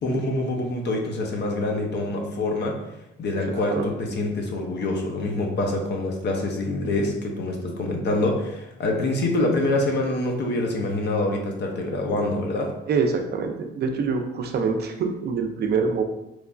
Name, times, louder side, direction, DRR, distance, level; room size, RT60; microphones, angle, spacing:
voice 1, 0.0-2.8 3.2-12.7, left 2 dB, 60° left, 2 dB, 0.6 m, -25 dB
voice 2, 3.5-3.9 12.9-16.0, right 5 dB, 55° right, 4 dB, 0.4 m, -25 dB
3.0 x 2.2 x 2.4 m, 0.87 s
cardioid pair, 90°, 20 cm